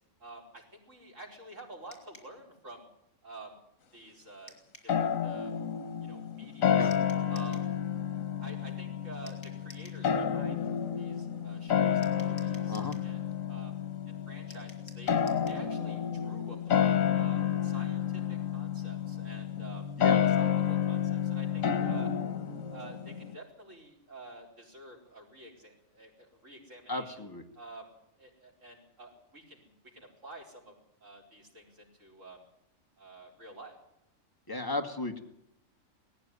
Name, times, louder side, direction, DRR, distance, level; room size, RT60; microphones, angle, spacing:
voice 1, 0.2-2.9 3.2-3.6 3.9-4.6 4.8-5.5 6.0-6.9 7.3-7.8 8.4-10.7 11.0-13.2 13.5-13.8 14.1-15.1 15.5-22.1 22.7-27.2 27.5-30.8 31.0-32.4 33.0-33.8, right 2 dB, 70° right, -1 dB, 5.1 m, -49 dB
sound 1, 1.9-2.3 4.5-4.9 6.9-7.7 9.3-10.0 12.0-13.1 14.5-15.6, left 3 dB, 75° left, 4.1 m, -54 dB
sound 2, 4.9-23.4, left 9 dB, 90° left, 1.5 m, -30 dB
voice 2, 12.7-13.0 20.0-20.2 26.9-27.4 34.5-35.2, left 2 dB, 15° left, 4 dB, 1.8 m, -34 dB
18.5 x 15.0 x 9.7 m, 0.79 s
omnidirectional pair, 1.3 m